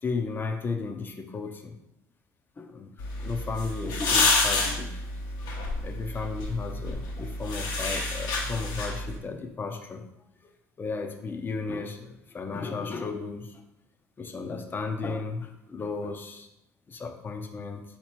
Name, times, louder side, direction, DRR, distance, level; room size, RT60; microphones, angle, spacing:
voice 1, 0.0-1.7 2.6-2.9 3.2-5.1 5.8-10.0 10.8-13.7 14.2-16.5 16.9-17.8, left 4 dB, 30° left, 4 dB, 0.6 m, -34 dB
sound 1, 3.0-9.2, left 3 dB, 70° left, 1.1 m, -29 dB
3.9 x 2.9 x 4.5 m, 0.86 s
supercardioid pair, 95°, 7 cm